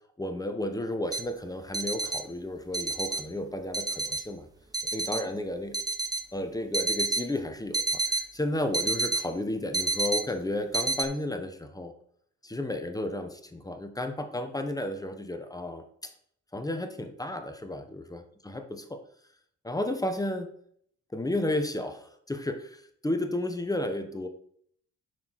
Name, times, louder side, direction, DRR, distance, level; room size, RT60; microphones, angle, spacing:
voice 1, 0.2-4.5 4.9-5.8 6.3-11.9 12.4-16.1 16.5-19.0 19.6-20.5 21.1-24.3, left 1 dB, 10° left, 7 dB, 1.0 m, -33 dB
sound 1, 1.1-1.2 1.7-2.2 2.7-3.2 3.7-4.2 4.7-5.2 5.7-6.2 6.7-7.2 7.7-8.2 8.7-9.2 9.7-10.2 10.7-11.0, right 2 dB, 15° right, 0.8 m, -28 dB
7.2 x 6.1 x 4.6 m, 0.65 s
cardioid pair, 90°, 30 cm